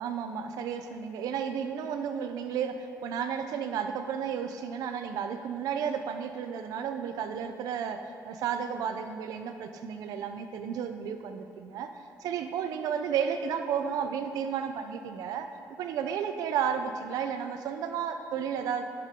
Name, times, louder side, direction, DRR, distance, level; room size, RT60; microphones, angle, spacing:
voice 1, 0.0-11.9 12.2-15.5 15.8-18.8, right 7 dB, 80° right, 8 dB, 0.8 m, -32 dB
16.0 x 12.0 x 3.9 m, 2.5 s
cardioid pair, 80°, 6 cm